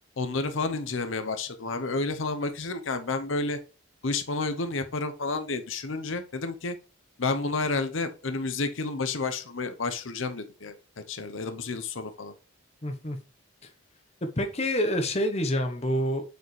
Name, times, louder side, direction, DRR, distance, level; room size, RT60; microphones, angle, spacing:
voice 1, 0.2-3.6 4.0-6.8 7.2-10.8 11.1-12.3, left 3 dB, 80° left, 9 dB, 0.8 m, -30 dB
voice 2, 12.8-13.2 14.2-16.2, equal, 35° left, 6 dB, 1.0 m, -27 dB
7.9 x 5.0 x 3.2 m, 0.34 s
head